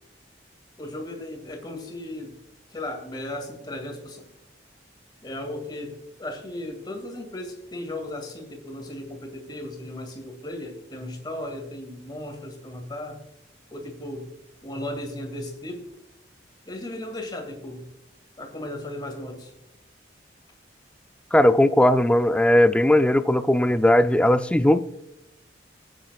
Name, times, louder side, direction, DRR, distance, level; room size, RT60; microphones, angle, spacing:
voice 1, 0.8-2.4 2.7-4.3 5.2-13.2 13.7-14.3 14.6-15.9 16.7-17.9 18.4-19.5, left 1 dB, 25° left, 2.1 m, -36 dB
voice 2, 21.3-24.8, left 1 dB, 5° left, 0.4 m, -18 dB
21.5 x 9.4 x 2.3 m
head